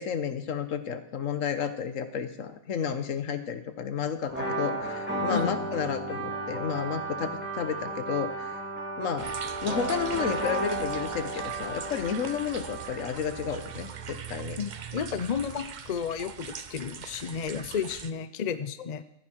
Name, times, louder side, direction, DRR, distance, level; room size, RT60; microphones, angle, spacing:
voice 1, 0.0-8.6 9.0-9.3 9.6-14.6, left 7 dB, 70° left, 10 dB, 1.4 m, -32 dB
sound 1, 4.3-13.9, right 2 dB, 10° right, 3.1 m, -34 dB
sound 2, 9.2-18.1, right 7 dB, 45° right, 0.6 m, -41 dB
voice 2, 14.6-19.0, left 7 dB, 45° left, 13 dB, 0.5 m, -32 dB
14.5 x 10.0 x 4.5 m, 0.81 s
omnidirectional pair, 1.4 m